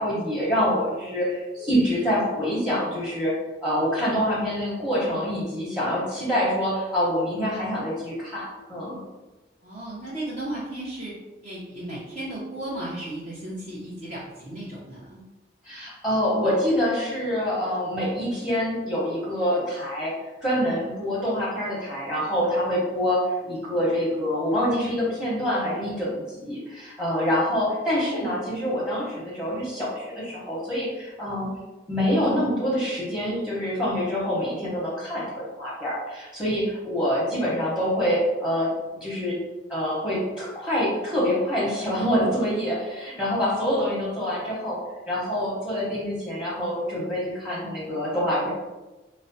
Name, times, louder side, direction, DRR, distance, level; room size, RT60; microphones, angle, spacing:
voice 1, 0.0-3.3 3.6-9.0 15.6-20.1 20.4-31.5 31.9-38.7 39.0-39.4 39.7-44.8 45.1-48.5, equal, 5° right, -6 dB, 0.9 m, -26 dB
voice 2, 9.6-11.1 11.4-15.2, right 1 dB, 40° right, -8 dB, 0.7 m, -35 dB
4.8 x 2.1 x 2.7 m, 1.1 s
head